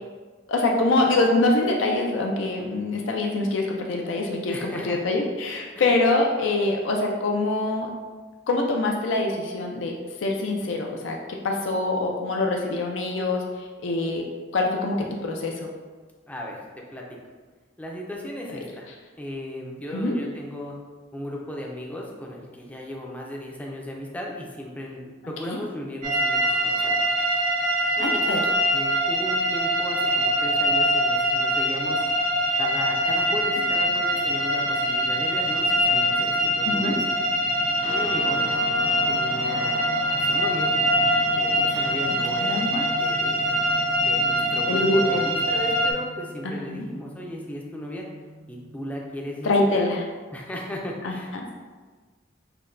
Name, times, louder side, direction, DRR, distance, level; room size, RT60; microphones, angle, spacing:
voice 1, 0.5-7.9 8.5-14.3 14.5-15.7 19.9-20.2 25.5-25.6 28.0-28.4 36.6-36.9 41.7-41.9 42.4-42.9 44.7-45.2 46.7-46.9 49.4-50.0 51.0-51.1 51.4-51.5, left 2 dB, 75° left, 1 dB, 0.4 m, -24 dB
voice 2, 4.5-5.1 5.7-5.8 16.3-17.0 17.8-18.9 19.2-20.7 21.1-27.1 28.0-28.4 28.7-32.0 32.6-37.0 37.8-38.4 39.1-39.8 40.1-40.7 41.4-43.6 44.0-48.0 48.5-50.0 50.3-51.5, left 1 dB, 10° left, -2 dB, 0.4 m, -36 dB
sound 1, 26.0-45.9, equal, 45° right, 0.5 m, -23 dB
sound 2, 37.8-49.0, equal, 65° right, 0.9 m, -41 dB
5.7 x 2.2 x 2.5 m, 1.4 s
head